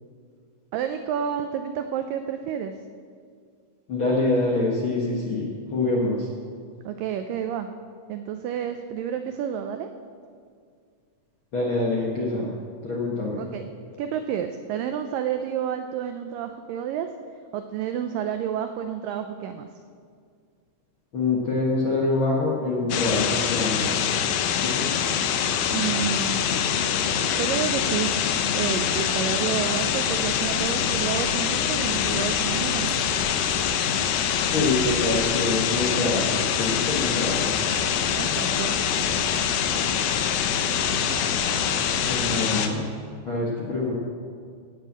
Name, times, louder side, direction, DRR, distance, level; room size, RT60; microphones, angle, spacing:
voice 1, 0.7-2.7 6.8-7.7 8.1-9.9 13.4-13.6 14.0-17.1 17.5-19.7 25.7-26.4 27.3-28.1 28.5-32.9 38.2-38.8, right 9 dB, 85° right, 8 dB, 1.9 m, -30 dB
voice 2, 3.9-6.3 11.5-12.5 12.8-13.5 21.1-23.9 24.6-24.9 34.5-37.5 42.1-42.8 43.2-43.9, left 2 dB, 55° left, -4 dB, 1.4 m, -25 dB
sound 1, 22.9-42.7, left 8 dB, 90° left, 2.9 m, -24 dB
Purr, 25.7-42.2, equal, 35° left, 4.7 m, -41 dB
17.5 x 6.7 x 7.5 m, 2.1 s
omnidirectional pair, 4.6 m